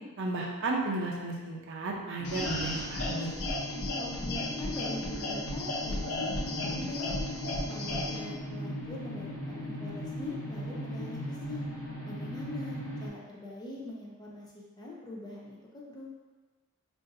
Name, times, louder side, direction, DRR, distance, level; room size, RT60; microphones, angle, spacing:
voice 1, 0.2-3.3, right 2 dB, 55° right, 0 dB, 0.5 m, -33 dB
sound 1, 2.2-13.1, equal, 85° left, 1.0 m, -39 dB
sound 2, 2.2-8.2, left 2 dB, 65° left, 0.6 m, -34 dB
voice 2, 3.8-6.3 6.6-7.2 7.7-11.6 12.1-14.5 14.8-16.1, left 2 dB, 20° left, -4 dB, 0.5 m, -43 dB
2.6 x 2.5 x 3.9 m, 1.3 s
head